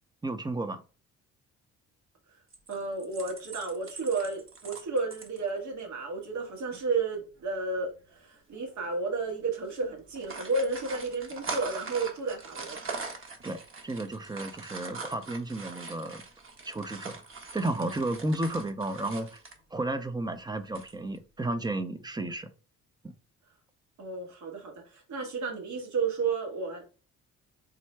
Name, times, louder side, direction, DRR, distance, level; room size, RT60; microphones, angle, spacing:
voice 1, 0.2-0.8 13.4-16.2 16.7-17.2 17.5-19.4 19.7-22.5 23.0-23.1, right 2 dB, 15° right, 0.5 m, -33 dB
sound 1, 2.5-5.4 5.8-5.9 6.2-6.4 6.7-6.8 7.8-8.2 8.7-8.9 9.2-9.4 10.0-19.6 20.7-21.2, right 4 dB, 45° right, 1.0 m, -42 dB
voice 2, 2.7-13.0 24.0-26.9, right 4 dB, 70° right, 1.4 m, -32 dB
3.6 x 2.1 x 4.4 m
cardioid pair, 90°, 30 cm